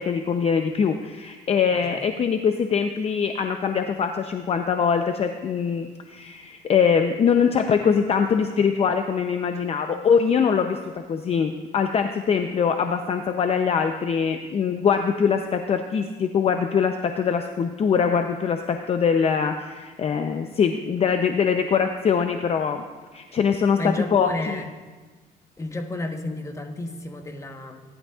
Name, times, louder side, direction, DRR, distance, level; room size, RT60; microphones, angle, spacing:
voice 1, 0.0-22.9 23.1-24.6, left 6 dB, 35° left, 6 dB, 0.6 m, -23 dB
voice 2, 23.8-24.7 25.6-27.8, left 2 dB, 15° left, 4 dB, 1.1 m, -32 dB
18.0 x 11.5 x 2.4 m, 1.3 s
cardioid pair, 110°, 17 cm